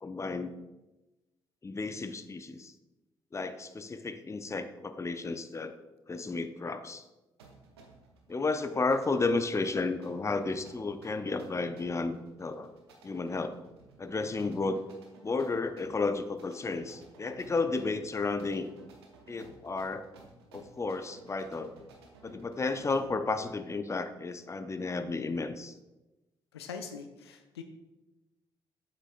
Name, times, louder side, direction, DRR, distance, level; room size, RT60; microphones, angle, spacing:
voice 1, 0.0-0.5 1.6-2.7 3.3-5.7 6.1-7.0 8.3-12.7 13.0-13.6 14.0-14.8 15.2-18.7 19.3-20.0 20.5-21.7 22.2-25.7, left 3 dB, 20° left, 10 dB, 0.5 m, -32 dB
sound 1, 7.4-23.2, right 3 dB, 85° right, 0.6 m, -57 dB
voice 2, 26.5-27.6, left 6 dB, 90° left, 7 dB, 0.4 m, -42 dB
7.4 x 6.2 x 2.5 m, 1.0 s
figure-of-eight pair, 40°, 13 cm